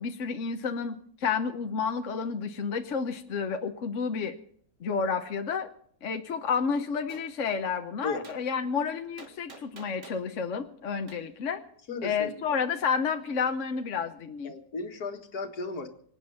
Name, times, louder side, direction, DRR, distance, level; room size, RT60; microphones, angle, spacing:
voice 1, 0.0-4.4 4.8-5.7 6.0-11.6 12.0-14.5, left 6 dB, 55° left, 6 dB, 1.2 m, -30 dB
Gunshot gunfire, 7.1-7.3 8.2-8.4 9.2-10.3 11.1-11.2, right 2 dB, 50° right, 2.3 m, -47 dB
voice 2, 11.9-12.4 14.4-15.9, left 4 dB, 70° left, 5 dB, 2.2 m, -35 dB
25.0 x 8.8 x 5.7 m, 0.64 s
omnidirectional pair, 1.7 m